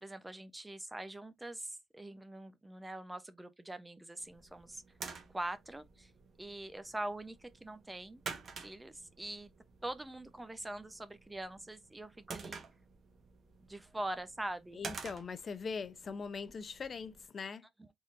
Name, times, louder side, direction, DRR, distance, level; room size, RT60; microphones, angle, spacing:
voice 1, 0.0-4.8 5.3-6.1 6.4-8.2 8.6-9.5 9.8-12.6 13.7-14.9 17.8-17.9, right 1 dB, 15° right, 0.6 m, -43 dB
sound 1, 4.2-17.3, right 5 dB, 50° right, 1.1 m, -50 dB
voice 2, 14.7-17.7, left 5 dB, 45° left, 0.6 m, -41 dB
4.0 x 3.7 x 2.5 m
cardioid pair, 90°, 0 cm